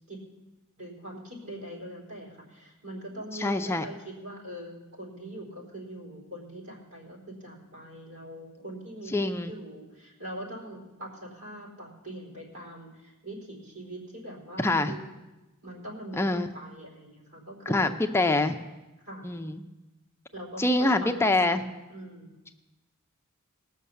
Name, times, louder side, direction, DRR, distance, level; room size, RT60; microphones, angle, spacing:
voice 1, 0.8-15.2 15.6-18.0 19.1-19.3 20.3-21.6 21.9-22.5, right 1 dB, 85° right, -2 dB, 4.1 m, -42 dB
voice 2, 3.3-3.9 9.1-9.5 14.6-15.0 16.2-16.5 17.7-18.6 19.2-19.6 20.6-21.6, left 2 dB, 10° left, 6 dB, 0.5 m, -25 dB
18.5 x 6.5 x 7.0 m, 1.1 s
head